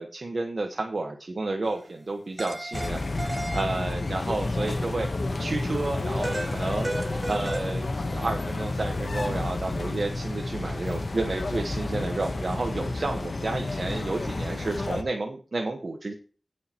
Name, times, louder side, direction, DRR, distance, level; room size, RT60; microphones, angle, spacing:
voice 1, 0.0-5.1 5.4-6.9 7.3-16.1, right 2 dB, 60° right, 3 dB, 1.3 m, -31 dB
sound 1, 1.7-1.8 2.4-4.2 6.2-7.9, right 1 dB, 35° right, 0.7 m, -35 dB
sound 2, 2.7-15.0, left 2 dB, 60° left, 1.1 m, -30 dB
16.5 x 6.6 x 3.0 m, 0.39 s
wide cardioid pair, 50°, 0 cm